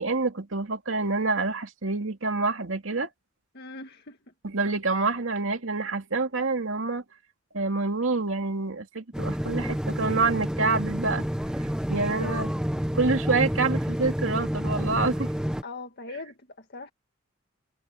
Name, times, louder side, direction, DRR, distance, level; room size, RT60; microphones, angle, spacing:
voice 1, 0.0-3.1 4.4-7.0 7.5-11.2 11.6-12.5 12.9-15.3, right 3 dB, 80° right, 2.4 m, -27 dB
voice 2, 3.5-4.3 12.1-12.4 15.6-16.9, left 2 dB, 55° left, 1.9 m, -41 dB
sound 1, 9.1-15.6, equal, 5° right, 1.0 m, -29 dB
head